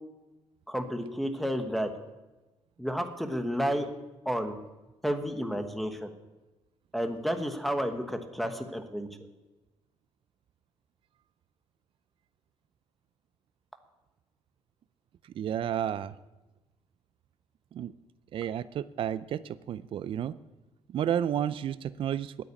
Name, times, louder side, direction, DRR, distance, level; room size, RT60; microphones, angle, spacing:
voice 1, 0.7-1.9 2.8-3.9 4.2-4.6 5.0-6.1 6.9-9.1, equal, ahead, 5 dB, 1.2 m, -31 dB
voice 2, 15.4-16.1 17.7-17.9 18.3-20.4 20.9-22.4, right 10 dB, 55° right, 15 dB, 0.4 m, -31 dB
10.0 x 9.0 x 8.7 m, 1.1 s
cardioid pair, 125°, 11 cm